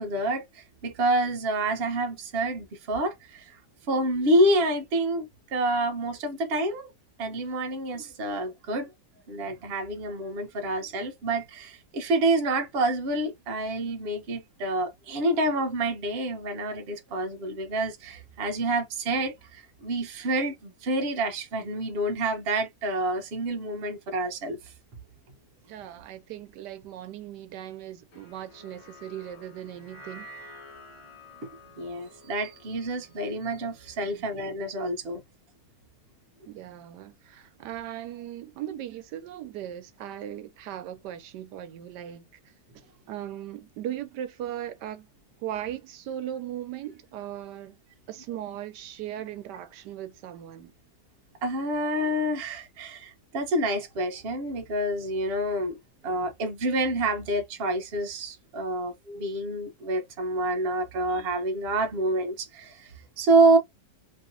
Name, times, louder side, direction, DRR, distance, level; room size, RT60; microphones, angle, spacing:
voice 1, 0.0-3.6 3.9-6.9 7.2-8.9 9.3-24.6 31.8-35.2 51.4-55.8 56.0-62.9 63.2-63.6, right 2 dB, 50° right, 0.8 m, -27 dB
voice 2, 25.6-30.3 34.0-34.1 36.5-42.3 42.7-45.1 45.4-47.8 48.1-50.7, right 11 dB, 80° right, 1.2 m, -38 dB
sound 1, 28.1-34.5, left 1 dB, 35° left, 0.9 m, -50 dB
3.1 x 2.7 x 2.5 m
omnidirectional pair, 1.8 m